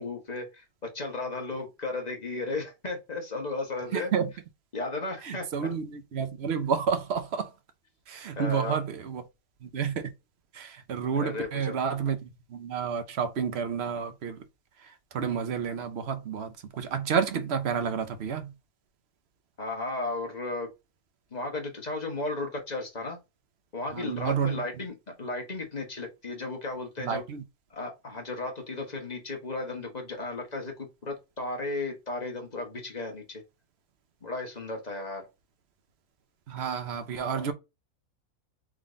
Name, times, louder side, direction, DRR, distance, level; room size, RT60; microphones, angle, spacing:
voice 1, 0.0-4.1 4.7-5.5 8.4-8.8 11.2-11.8 19.6-20.7 21.3-23.2 23.7-27.2 27.7-33.4 34.2-35.2, left 2 dB, 30° left, 1.2 m, -34 dB
voice 2, 3.9-4.3 5.2-7.5 8.1-9.2 9.6-10.1 10.5-14.4 15.1-18.5 23.9-24.6 27.0-27.4 36.5-37.5, right 6 dB, 55° right, 0.8 m, -30 dB
3.7 x 3.2 x 3.8 m
omnidirectional pair, 1.6 m